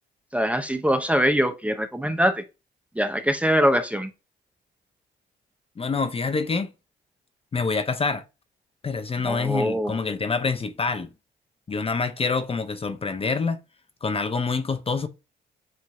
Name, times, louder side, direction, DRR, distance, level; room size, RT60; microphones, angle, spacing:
voice 1, 0.3-2.4 3.0-4.1 9.2-9.9, equal, 5° right, 0.7 m, -23 dB
voice 2, 5.8-6.7 7.5-8.2 8.8-11.1 11.7-13.6 14.0-15.1, left 4 dB, 30° left, 0.7 m, -26 dB
7.5 x 2.6 x 2.2 m
cardioid pair, 90°, 20 cm